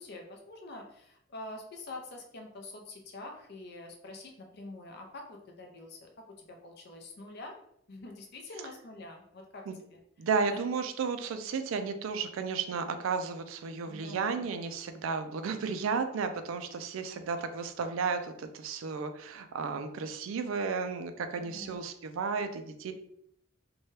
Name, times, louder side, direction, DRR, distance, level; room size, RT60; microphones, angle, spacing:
voice 1, 0.0-6.1 6.4-7.6 7.9-10.0 10.5-10.6 13.8-14.4 17.1-17.4 21.4-21.8, left 2 dB, 55° left, 2 dB, 0.5 m, -46 dB
voice 2, 10.2-22.9, right 5 dB, 75° right, 8 dB, 0.4 m, -33 dB
2.7 x 2.2 x 3.2 m, 0.72 s
head